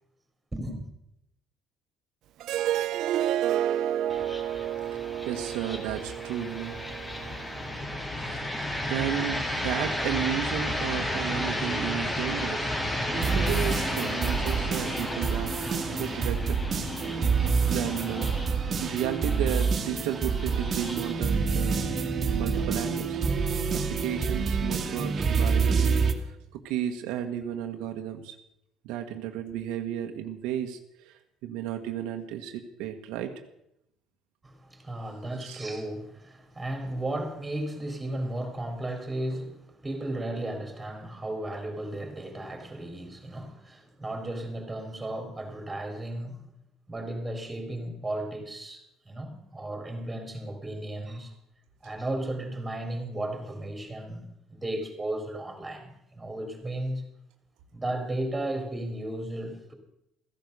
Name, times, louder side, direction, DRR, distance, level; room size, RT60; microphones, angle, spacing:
voice 1, 0.5-0.9 34.4-46.4 46.9-51.3 51.8-57.0 57.7-59.7, right 1 dB, 15° right, 3.8 m, -35 dB
Harp, 2.4-7.6, right 11 dB, 65° right, 0.5 m, -30 dB
sound 1, 4.1-23.1, left 1 dB, 15° left, 2.2 m, -33 dB
voice 2, 4.9-6.8 8.1-8.4 8.9-12.7 13.3-15.5 16.0-16.7 17.7-18.4 18.8-21.8 22.3-23.2 23.7-28.4 28.8-33.3 35.4-35.6, right 10 dB, 85° right, 1.3 m, -33 dB
sound 2, 13.1-26.1, right 5 dB, 40° right, 1.8 m, -27 dB
14.5 x 10.5 x 6.7 m
cardioid pair, 105°, 0 cm